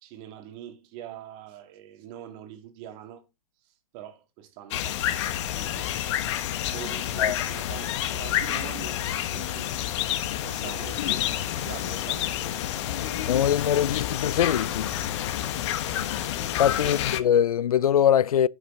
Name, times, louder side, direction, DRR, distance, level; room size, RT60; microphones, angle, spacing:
voice 1, 0.0-3.3 3.6-5.9 6.5-9.7 10.4-12.7 16.7-17.1, right 10 dB, 40° right, 2.1 m, -44 dB
sound 1, 4.7-17.2, left 11 dB, 50° left, 1.3 m, -29 dB
voice 2, 13.3-14.9 16.6-18.5, left 9 dB, 85° left, 0.5 m, -22 dB
10.5 x 6.3 x 3.7 m
hypercardioid pair, 125°, 18 cm